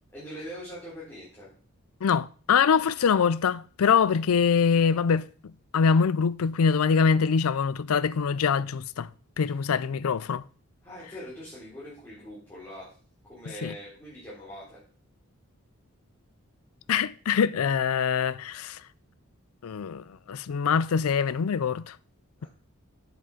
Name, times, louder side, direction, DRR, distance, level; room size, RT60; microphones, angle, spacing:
voice 1, 0.1-1.5 9.4-9.5 10.8-12.9 13.3-14.8 22.4-22.5, equal, 10° left, 4.0 m, -42 dB
voice 2, 2.0-5.3 5.7-9.1 9.4-10.4 13.6-13.7 16.9-18.8 19.6-22.0, left 6 dB, 80° left, 0.4 m, -24 dB
8.0 x 7.4 x 5.0 m
head